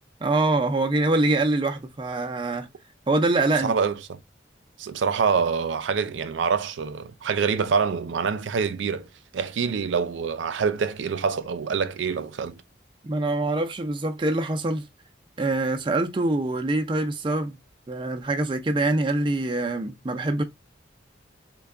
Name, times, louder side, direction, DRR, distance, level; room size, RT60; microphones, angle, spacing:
voice 1, 0.2-2.7 3.1-3.7 13.0-14.9 15.4-17.6 17.9-20.4, right 2 dB, 25° right, 0.4 m, -24 dB
voice 2, 3.6-4.2 4.8-9.1 9.3-12.6, right 6 dB, 85° right, 0.4 m, -26 dB
3.3 x 2.2 x 3.6 m
head